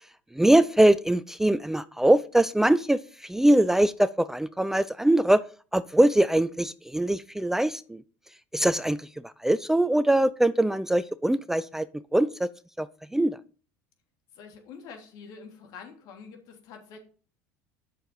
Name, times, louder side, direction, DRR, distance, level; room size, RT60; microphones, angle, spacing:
voice 1, 0.3-5.4 5.7-8.0 8.5-12.5 12.8-12.9 13.1-13.4, right 1 dB, 5° right, 16 dB, 0.4 m, -22 dB
voice 2, 14.3-17.0, left 5 dB, 65° left, 2 dB, 3.3 m, -46 dB
9.1 x 6.5 x 5.5 m, 0.39 s
supercardioid pair, 95°, 7 cm